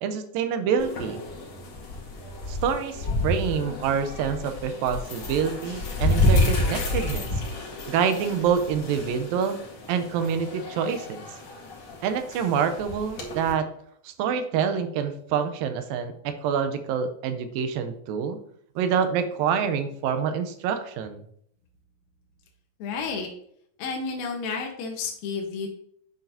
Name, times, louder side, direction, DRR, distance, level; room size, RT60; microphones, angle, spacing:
voice 1, 0.0-1.2 2.5-7.3 7.9-9.6 9.9-11.2 12.0-13.7 14.0-18.4 18.8-21.2, right 7 dB, 85° right, 8 dB, 2.5 m, -26 dB
sound 1, 0.8-13.5, left 1 dB, 50° left, 2.5 m, -29 dB
voice 2, 22.8-23.3 23.8-25.7, left 5 dB, 85° left, 2 dB, 2.9 m, -31 dB
10.0 x 6.6 x 2.8 m, 0.67 s
omnidirectional pair, 4.1 m